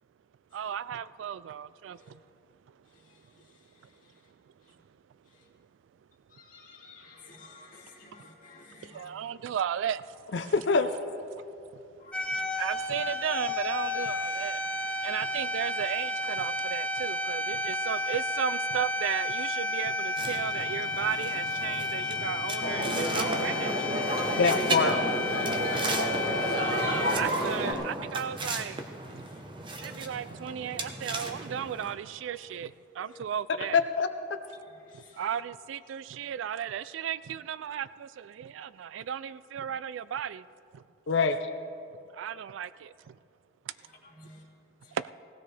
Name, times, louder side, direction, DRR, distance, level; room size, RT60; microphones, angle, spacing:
voice 1, 0.5-2.2 8.8-10.0 12.6-14.6 15.0-24.1 26.5-28.8 29.1-29.2 29.8-33.8 34.9-40.4 40.7-40.8 42.1-43.2 44.9-45.1, right 9 dB, 85° right, 0.3 m, -35 dB
voice 2, 6.3-9.2 12.0-12.6 29.9-30.0 32.4-32.5 33.0-33.2 34.9-35.2 44.0-44.4 44.8-44.9, left 3 dB, 45° left, 2.3 m, -53 dB
voice 3, 10.3-10.9 24.4-25.0 33.7-34.4 41.1-41.4, left 4 dB, 75° left, 0.6 m, -25 dB
sound 1, 12.1-27.2, left 2 dB, 5° left, 0.6 m, -32 dB
sound 2, 20.2-31.9, right 3 dB, 25° right, 0.9 m, -38 dB
sound 3, 22.6-27.7, right 1 dB, 55° right, 3.6 m, -30 dB
18.5 x 17.0 x 3.3 m
head